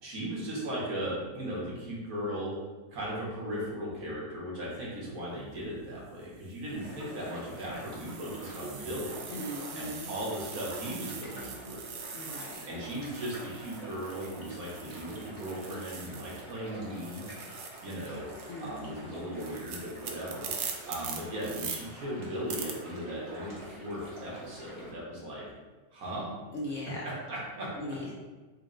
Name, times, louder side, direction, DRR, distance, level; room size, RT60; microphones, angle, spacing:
voice 1, 0.0-2.5 2.9-9.2 9.7-11.9 12.7-17.2 17.8-18.2 18.6-20.5 20.8-25.5 25.9-26.3 27.0-28.1, equal, 65° right, -5 dB, 1.4 m, -37 dB
sound 1, 5.4-5.7 6.4-16.6 16.8-21.8 22.5-22.7, right 6 dB, 85° right, 1.1 m, -43 dB
sound 2, 6.6-24.9, right 1 dB, 20° right, 1.0 m, -47 dB
voice 2, 9.3-10.1 12.1-12.7 18.5-19.1 26.5-27.1 27.7-28.1, left 1 dB, 70° left, -3 dB, 0.8 m, -39 dB
4.2 x 2.0 x 3.7 m, 1.3 s
omnidirectional pair, 1.6 m